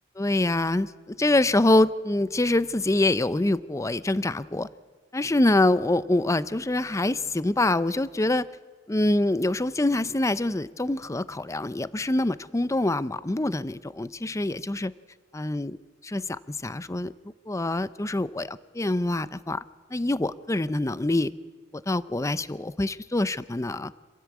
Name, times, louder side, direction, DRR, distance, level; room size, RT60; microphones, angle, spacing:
voice 1, 0.2-4.7 5.1-8.5 8.9-14.9 15.3-15.8 16.0-17.1 17.5-19.6 19.9-21.3 21.9-23.9, left 2 dB, 15° left, 16 dB, 0.6 m, -25 dB
26.5 x 15.5 x 8.3 m, 1.4 s
head